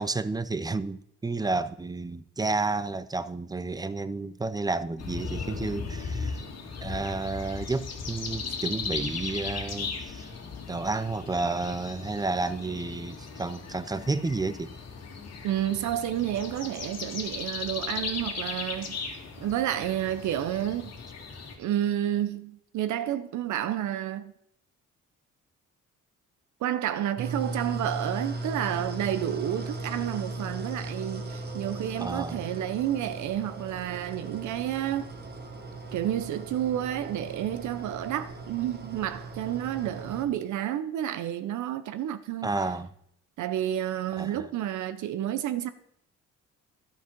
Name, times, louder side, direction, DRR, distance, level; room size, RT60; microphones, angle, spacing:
voice 1, 0.0-6.4 6.8-10.3 10.7-14.7 32.0-32.4 42.4-42.9 44.2-44.5, right 3 dB, 15° right, 0.4 m, -31 dB
sound 1, 5.0-21.6, left 5 dB, 60° left, 2.0 m, -37 dB
voice 2, 15.4-19.0 19.4-20.9 21.6-24.3 26.6-35.1 35.9-42.5 43.4-45.7, right 11 dB, 75° right, 0.6 m, -30 dB
sound 2, 27.2-40.2, right 2 dB, 35° right, 1.4 m, -38 dB
11.0 x 6.4 x 5.1 m
cardioid pair, 90°, 30 cm